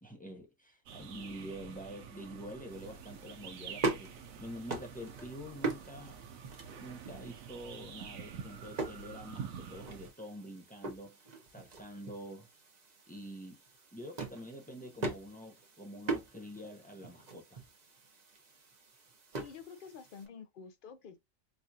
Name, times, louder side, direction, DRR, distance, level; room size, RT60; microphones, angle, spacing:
voice 1, 0.0-6.2 6.8-11.2 11.5-12.5 13.1-13.6 13.9-17.6, equal, 10° left, 0.4 m, -46 dB
sound 1, 0.9-10.1, right 7 dB, 90° right, 1.0 m, -48 dB
sound 2, 2.7-20.3, right 3 dB, 40° right, 0.8 m, -42 dB
voice 2, 19.3-21.2, left 6 dB, 60° left, 0.6 m, -49 dB
4.2 x 2.4 x 2.7 m
omnidirectional pair, 1.4 m